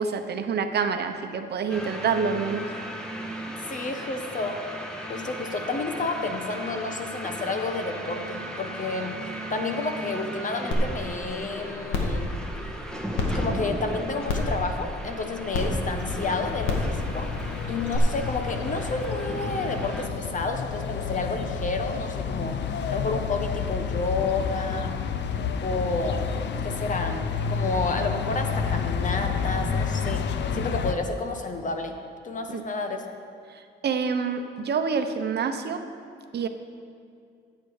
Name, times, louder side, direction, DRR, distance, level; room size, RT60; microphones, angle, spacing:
voice 1, 0.0-2.7 32.5-32.6 33.5-35.8 36.3-36.5, right 5 dB, 55° right, 7 dB, 0.9 m, -27 dB
sound 1, 1.7-20.1, right 1 dB, 5° left, 1.5 m, -36 dB
voice 2, 3.5-4.6 5.1-9.2 9.5-12.3 13.2-24.9 25.3-32.0 32.2-33.0, left 3 dB, 40° left, 5 dB, 1.2 m, -30 dB
sound 2, 10.7-10.8 11.3-11.4 11.9-12.1 13.2-13.3 14.3-14.5 15.5-15.6 16.6-16.9 17.9-18.0, left 4 dB, 85° left, 1.9 m, -26 dB
sound 3, 16.0-30.9, left 6 dB, 60° left, 0.7 m, -30 dB
13.5 x 8.4 x 4.9 m, 2.3 s
cardioid pair, 90°, 20 cm